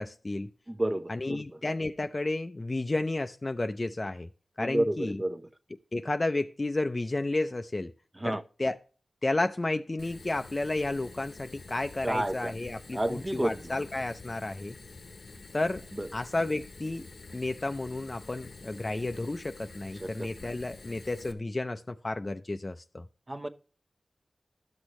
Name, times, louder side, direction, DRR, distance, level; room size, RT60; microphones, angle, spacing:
voice 1, 0.0-0.5 1.1-4.3 4.6-5.2 5.9-7.9 8.2-8.8 9.2-14.8 15.5-15.8 16.1-17.1 17.3-23.1, left 2 dB, 40° left, 0.4 m, -32 dB
voice 2, 0.7-1.4 4.6-5.5 8.2-8.4 12.0-12.6 12.9-13.7 15.9-16.1 20.0-20.5 23.3-23.5, right 1 dB, 25° right, 0.8 m, -31 dB
Fire, 10.0-21.3, left 3 dB, 90° left, 0.9 m, -48 dB
12.5 x 6.2 x 3.0 m
wide cardioid pair, 55°, 0 cm